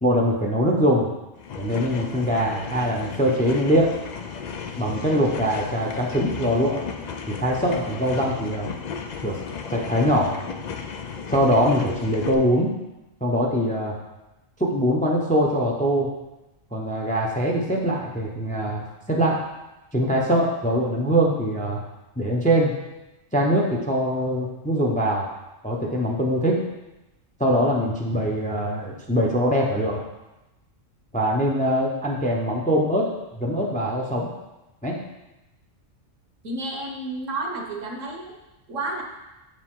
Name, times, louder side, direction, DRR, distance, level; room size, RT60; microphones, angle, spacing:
voice 1, 0.0-1.1 1.6-3.9 4.8-6.8 7.4-8.7 9.2-9.3 9.7-10.3 11.3-12.7 13.2-14.0 14.6-16.1 16.7-19.4 19.9-21.8 22.2-22.7 23.3-25.3 25.6-26.6 27.4-30.0 31.1-33.1 33.4-34.3 34.8-35.0, equal, 10° left, -1 dB, 0.7 m, -22 dB
sound 1, 1.4-12.3, left 6 dB, 60° left, 0.4 m, -34 dB
voice 2, 36.4-38.3 38.7-39.0, right 2 dB, 75° right, 0 dB, 1.4 m, -31 dB
7.3 x 5.0 x 3.7 m, 0.99 s
omnidirectional pair, 1.3 m